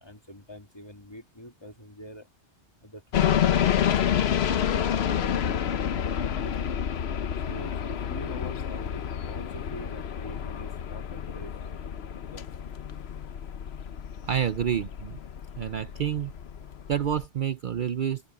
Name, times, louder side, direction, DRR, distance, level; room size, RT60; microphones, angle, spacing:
voice 1, 0.0-2.3 2.8-6.6 7.5-11.8 12.3-12.5, left 1 dB, 25° left, 2.2 m, -45 dB
sound 1, 3.1-17.3, left 9 dB, 70° left, 1.0 m, -29 dB
voice 2, 14.2-15.2 15.6-16.3 16.9-18.2, right 9 dB, 55° right, 0.7 m, -28 dB
open air
omnidirectional pair, 1.1 m